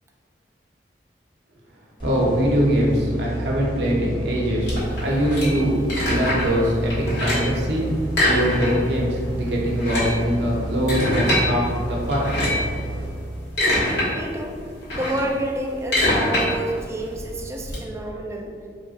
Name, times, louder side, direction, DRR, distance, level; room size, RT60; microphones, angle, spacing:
sound 1, 2.0-13.7, right 1 dB, 30° left, 1.4 m, -31 dB
voice 1, 2.0-4.7 5.0-5.8 6.0-7.9 8.2-12.3, equal, 70° right, -3 dB, 0.8 m, -22 dB
sound 2, 4.6-6.6 6.9-7.6 8.1-9.0 9.2-9.3 9.7-11.5 12.1-12.7 13.2-14.1 14.4-17.8, left 1 dB, 85° left, 1.5 m, -24 dB
voice 2, 14.1-14.6 14.9-18.5, right 1 dB, 15° right, 0 dB, 0.3 m, -29 dB
3.3 x 2.4 x 4.0 m, 2.1 s
head